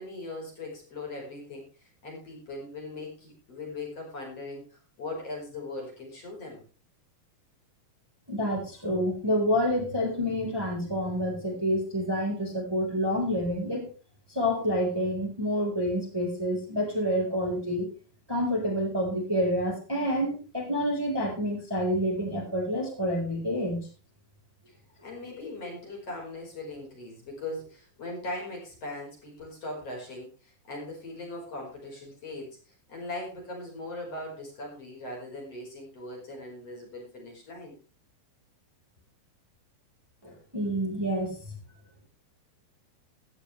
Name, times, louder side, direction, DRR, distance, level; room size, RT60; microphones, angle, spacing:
voice 1, 0.0-6.6 24.7-24.8 25.0-37.8, left 2 dB, 40° left, -1 dB, 5.9 m, -40 dB
voice 2, 8.3-13.9 14.3-17.9 18.3-23.9 40.2-41.4, equal, 5° right, 0 dB, 4.5 m, -28 dB
16.5 x 13.0 x 3.4 m, 0.33 s
omnidirectional pair, 4.2 m